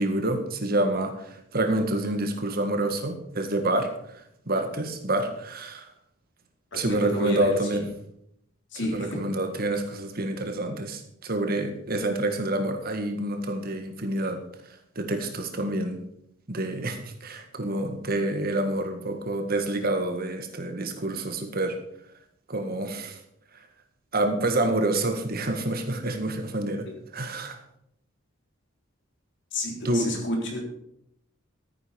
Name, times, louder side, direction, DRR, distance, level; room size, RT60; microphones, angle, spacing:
voice 1, 0.0-5.8 6.7-7.9 8.8-16.0 16.5-21.8 22.5-23.2 24.1-27.6 29.8-30.1, right 1 dB, 45° right, 6 dB, 1.7 m, -28 dB
voice 2, 6.7-7.5 8.7-9.2 29.5-30.6, left 1 dB, 60° left, 0 dB, 3.8 m, -30 dB
13.5 x 9.7 x 5.3 m, 0.74 s
head